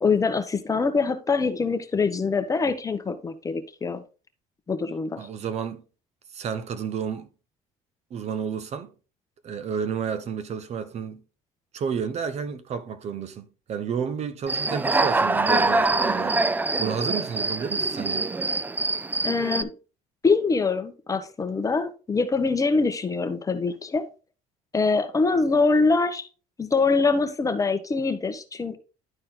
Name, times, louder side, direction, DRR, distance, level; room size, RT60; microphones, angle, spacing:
voice 1, 0.0-4.0 4.7-5.3 19.2-19.7 20.2-24.1 24.7-26.3 26.6-28.8, left 4 dB, 25° left, 1.0 m, -24 dB
voice 2, 5.2-5.8 6.3-7.3 8.1-8.9 9.4-11.2 11.7-16.4 16.8-18.3, right 7 dB, 50° right, 0.9 m, -31 dB
Human voice / Cricket, 14.5-19.6, right 3 dB, 10° right, 0.4 m, -24 dB
11.0 x 4.3 x 3.8 m
cardioid pair, 115°, 15 cm